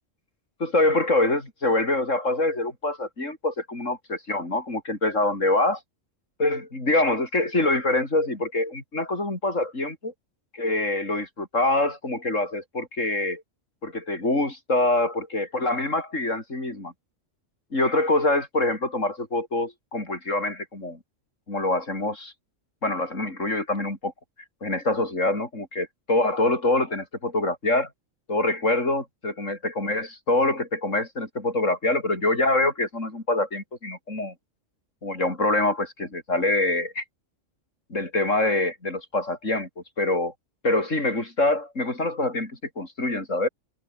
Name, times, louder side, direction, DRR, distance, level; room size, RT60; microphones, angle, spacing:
voice 1, 0.6-5.8 6.4-10.1 10.5-13.4 13.8-16.9 17.7-21.0 21.5-22.3 22.8-24.1 24.6-27.9 28.3-34.3 35.0-37.0 37.9-39.7 40.0-40.3 40.6-43.5, left 2 dB, 80° left, 6.2 m, -25 dB
omnidirectional pair, 1.3 m